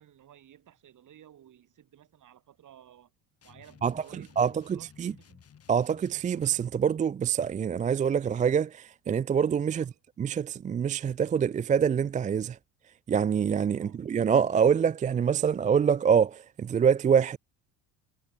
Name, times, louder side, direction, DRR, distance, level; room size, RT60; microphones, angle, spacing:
voice 1, 0.0-3.1 3.4-5.5 9.7-9.9 13.8-14.0, right 11 dB, 50° right, 6.8 m, -55 dB
sound 1, 3.4-6.8, left 8 dB, 35° left, 4.0 m, -56 dB
voice 2, 4.4-5.1 5.7-9.8 10.2-12.6 13.1-17.4, right 7 dB, 20° right, 0.4 m, -25 dB
cardioid pair, 105°, 39 cm